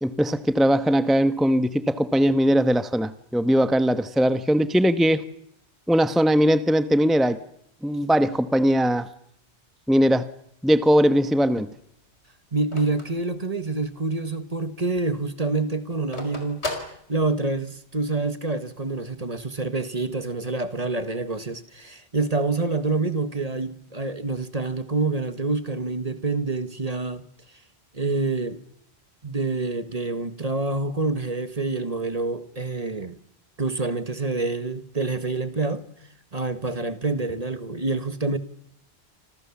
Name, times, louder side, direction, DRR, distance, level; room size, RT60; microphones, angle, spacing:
voice 1, 0.0-5.2 5.9-7.4 7.8-9.1 9.9-10.3 10.6-11.7, equal, ahead, 1.1 m, -20 dB
Telephone, 10.8-14.1 14.5-14.6 14.8-17.7, left 2 dB, 85° left, 5.2 m, -37 dB
voice 2, 12.5-27.2 27.9-28.6 29.2-33.2 33.6-35.8 36.3-38.4, right 3 dB, 35° right, 1.8 m, -27 dB
29.5 x 25.5 x 7.3 m
omnidirectional pair, 1.1 m